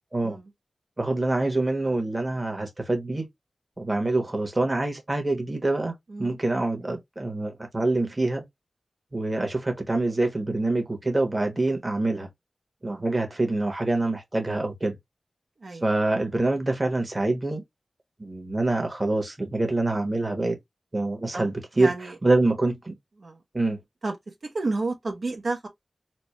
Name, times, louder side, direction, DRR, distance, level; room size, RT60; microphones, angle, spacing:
voice 1, 1.0-3.3 3.8-5.9 6.2-8.4 9.1-12.3 12.8-15.0 15.8-17.6 18.2-20.6 20.9-21.9 22.2-22.9 23.5-23.8, right 2 dB, 30° right, 1.1 m, -25 dB
voice 2, 21.8-22.2 23.2-23.4 24.0-24.1 24.4-25.7, right 3 dB, 65° right, 0.8 m, -31 dB
4.2 x 2.1 x 3.1 m
wide cardioid pair, 60°, 0 cm